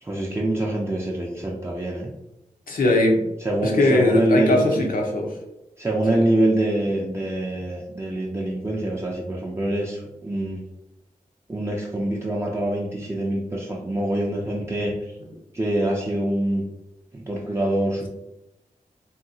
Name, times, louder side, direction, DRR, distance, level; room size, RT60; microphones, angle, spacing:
voice 1, 0.0-2.1 3.4-4.7 5.8-10.6 11.5-15.1 15.5-16.6 17.1-18.1, right 1 dB, 20° right, -3 dB, 0.4 m, -25 dB
voice 2, 2.7-3.2 3.6-5.3 6.1-6.2, left 2 dB, 80° left, 0 dB, 0.7 m, -20 dB
2.7 x 2.7 x 2.6 m, 0.90 s
wide cardioid pair, 105°, 14 cm